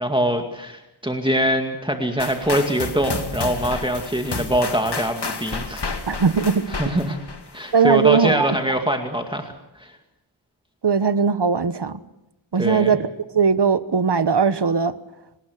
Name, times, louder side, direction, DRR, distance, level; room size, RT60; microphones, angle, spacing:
voice 1, 0.0-5.8 6.7-7.2 7.5-9.5 9.8-9.9 12.6-13.0, equal, 10° right, 2.2 m, -23 dB
sound 1, 2.2-8.0, left 4 dB, 55° left, 2.4 m, -31 dB
voice 2, 6.1-6.7 7.7-8.6 10.8-12.0 12.5-13.1 13.3-15.0, right 6 dB, 60° right, 1.2 m, -19 dB
28.0 x 19.5 x 6.6 m
wide cardioid pair, 70°, 47 cm